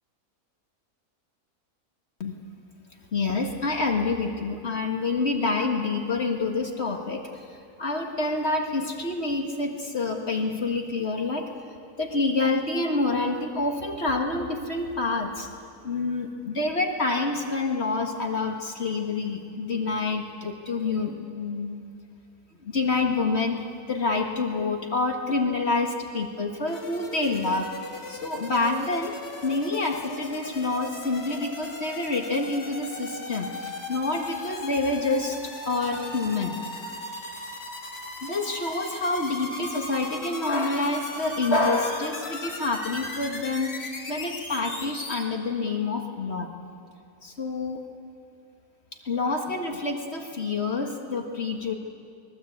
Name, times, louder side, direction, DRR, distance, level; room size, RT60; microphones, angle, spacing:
voice 1, 3.1-7.4 7.8-11.5 12.0-15.5 15.8-21.8 22.6-27.7 28.1-35.4 35.6-36.6 37.0-37.3 38.2-46.5 47.2-47.8 49.0-51.7, left 3 dB, 45° left, 2 dB, 1.9 m, -27 dB
sound 1, 26.7-45.2, left 2 dB, 80° left, 3.4 m, -38 dB
23.5 x 21.5 x 8.6 m, 2.5 s
omnidirectional pair, 1.6 m